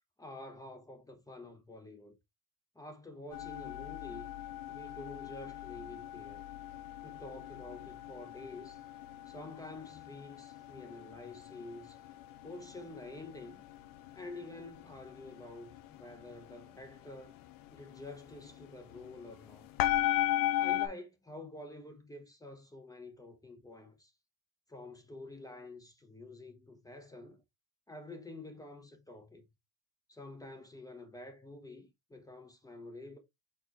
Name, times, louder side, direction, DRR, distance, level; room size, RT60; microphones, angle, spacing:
voice 1, 0.2-2.2 2.7-4.3 4.7-6.4 7.0-8.8 9.3-12.0 12.4-13.6 14.1-17.4 17.7-19.7 20.6-24.1 24.7-27.4 27.9-29.5 30.1-33.2, left 2 dB, 10° left, 0.7 m, -48 dB
sound 1, 3.3-20.9, left 13 dB, 60° left, 0.7 m, -38 dB
4.4 x 4.0 x 2.9 m
cardioid pair, 140°, 37 cm